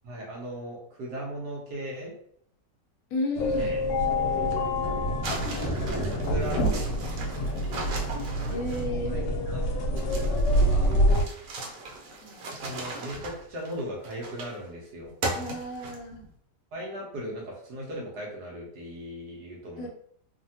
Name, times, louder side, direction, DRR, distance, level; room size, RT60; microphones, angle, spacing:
voice 1, 0.0-2.1 3.5-3.8 4.1-4.6 5.7-7.5 9.1-9.6 9.9-11.0 12.6-15.1 16.7-19.9, right 1 dB, 70° right, -3 dB, 1.2 m, -38 dB
voice 2, 3.1-3.7 8.5-9.2 12.2-12.5 15.3-16.3 19.8-19.9, left 2 dB, 65° left, 1 dB, 0.9 m, -33 dB
sound 1, 3.4-11.2, equal, 80° left, 1.3 m, -26 dB
sound 2, 5.2-9.1 10.0-14.7 15.2-16.3, right 2 dB, 90° right, 1.3 m, -37 dB
3.2 x 2.1 x 2.6 m, 0.66 s
omnidirectional pair, 1.8 m